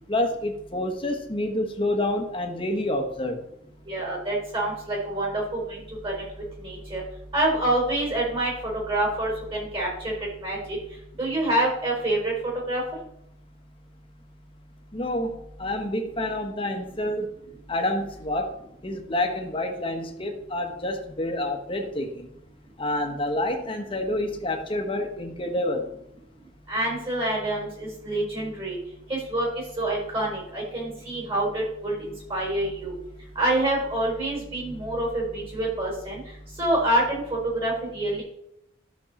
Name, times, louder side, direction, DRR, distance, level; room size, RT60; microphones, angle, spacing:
voice 1, 0.1-3.4 14.9-17.3 17.7-18.5 18.8-22.3 22.8-25.9, left 1 dB, 30° left, 4 dB, 1.4 m, -28 dB
voice 2, 3.9-6.2 6.6-7.0 7.3-8.5 8.9-10.1 10.4-10.8 11.2-12.3 12.7-12.8 26.7-28.8 29.1-29.5 29.8-32.9 33.3-36.2 36.6-38.2, right 1 dB, 30° right, -2 dB, 4.8 m, -26 dB
13.0 x 6.6 x 4.3 m, 0.77 s
head